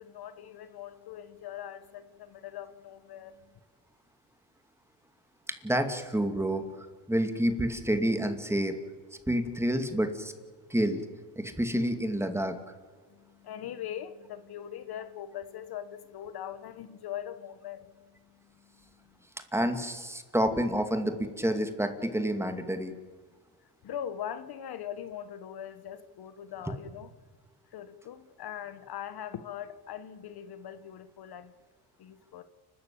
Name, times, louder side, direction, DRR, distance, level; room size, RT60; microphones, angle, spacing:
voice 1, 0.0-3.5 13.1-19.2 23.8-27.1 27.7-31.5 32.0-32.4, left 10 dB, 60° left, 1.3 m, -41 dB
voice 2, 5.5-8.8 9.3-10.3 10.7-11.0 11.4-12.6 19.5-22.9, equal, 5° right, 2.4 m, -29 dB
29.5 x 13.0 x 8.6 m
cardioid pair, 95°, 43 cm